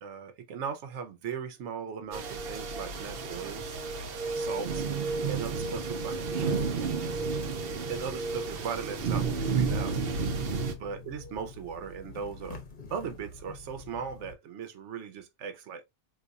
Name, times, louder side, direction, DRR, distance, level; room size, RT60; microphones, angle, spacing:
voice 1, 0.0-3.8 4.3-4.8 5.3-6.5 7.9-9.9 10.8-12.6 12.9-15.8, right 6 dB, 90° right, 1.0 m, -38 dB
sound 1, 2.1-10.7, right 4 dB, 60° right, 0.8 m, -31 dB
sound 2, 9.2-14.3, left 2 dB, 45° left, 1.0 m, -46 dB
4.0 x 2.7 x 2.3 m
omnidirectional pair, 1.2 m